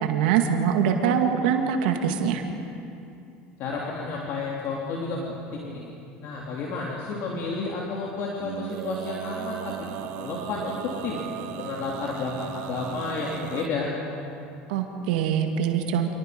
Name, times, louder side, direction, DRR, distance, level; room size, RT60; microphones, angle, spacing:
voice 1, 0.0-2.4 14.7-16.1, right 8 dB, 80° right, 4 dB, 2.0 m, -23 dB
voice 2, 3.6-5.9 6.2-9.7 10.2-10.8 11.0-11.2 11.6-13.9, left 4 dB, 60° left, -3 dB, 3.2 m, -31 dB
Male singing, 8.4-13.7, right 11 dB, 65° right, 1.1 m, -36 dB
27.0 x 18.5 x 5.2 m, 2.6 s
supercardioid pair, 100°, 5 cm